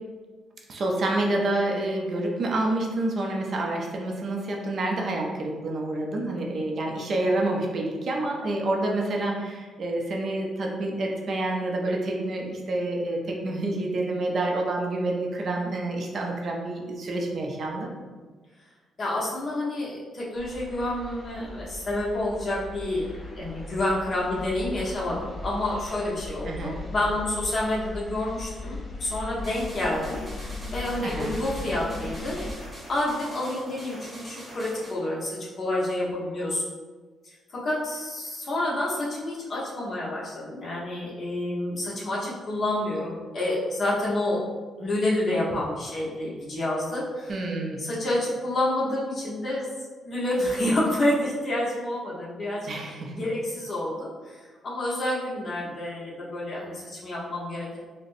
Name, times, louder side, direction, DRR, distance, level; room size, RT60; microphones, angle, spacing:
voice 1, 0.7-17.9 26.5-26.8 31.0-31.4 47.3-47.8 52.7-53.1, right 2 dB, 45° right, 0 dB, 0.5 m, -28 dB
voice 2, 19.0-23.1 23.3-36.6 37.2-44.4 44.8-47.4 47.8-49.7 50.0-57.8, left 1 dB, 40° left, -5 dB, 0.9 m, -29 dB
sound 1, 20.3-32.5, left 2 dB, 25° left, 0.5 m, -38 dB
sound 2, 29.4-35.0, right 1 dB, 10° right, 0.7 m, -44 dB
3.9 x 2.1 x 2.5 m, 1.4 s
cardioid pair, 125°, 0 cm